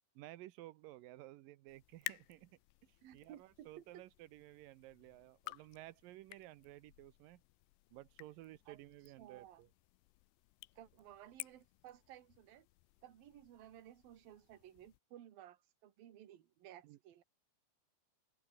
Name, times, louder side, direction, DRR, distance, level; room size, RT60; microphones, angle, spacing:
voice 1, 0.2-7.4 7.9-9.7 16.8-17.0, right 16 dB, 85° right, 1.9 m, -55 dB
sound 1, 1.7-15.0, left 23 dB, 85° left, 2.5 m, -54 dB
voice 2, 3.0-4.0 8.7-8.8 9.2-9.6 10.8-12.7 13.0-17.2, right 11 dB, 60° right, 3.5 m, -57 dB
omnidirectional pair, 5.3 m